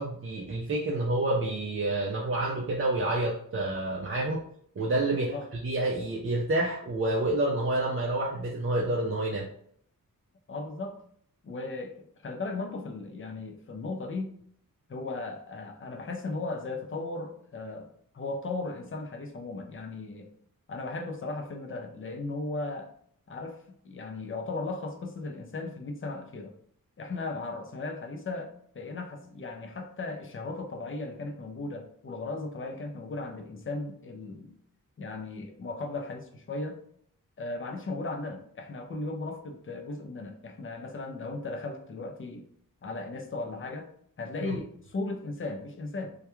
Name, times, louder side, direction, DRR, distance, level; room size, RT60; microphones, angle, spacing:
voice 1, 0.0-4.4 4.8-9.5 44.4-44.5, right 2 dB, 40° right, -3 dB, 0.4 m, -28 dB
voice 2, 10.5-11.0 11.4-14.3 14.9-20.3 20.7-22.9 23.3-26.5 27.0-34.5 35.0-36.8 37.4-42.5 42.8-43.9 44.2-46.1, left 3 dB, 35° left, 3 dB, 0.5 m, -36 dB
2.3 x 2.2 x 2.9 m, 0.63 s
wide cardioid pair, 105°, 35 cm